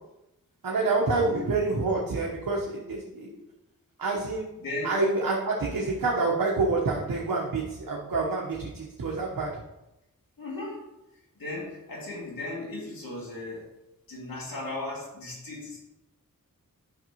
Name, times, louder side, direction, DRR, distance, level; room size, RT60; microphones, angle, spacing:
voice 1, 0.6-3.3 4.0-4.4 4.8-9.5, right 3 dB, 80° right, -3 dB, 1.1 m, -27 dB
voice 2, 4.6-5.0 10.4-10.8 11.4-13.7 14.1-15.8, left 2 dB, 80° left, -3 dB, 2.5 m, -36 dB
8.9 x 5.9 x 3.0 m, 0.93 s
wide cardioid pair, 75°, 34 cm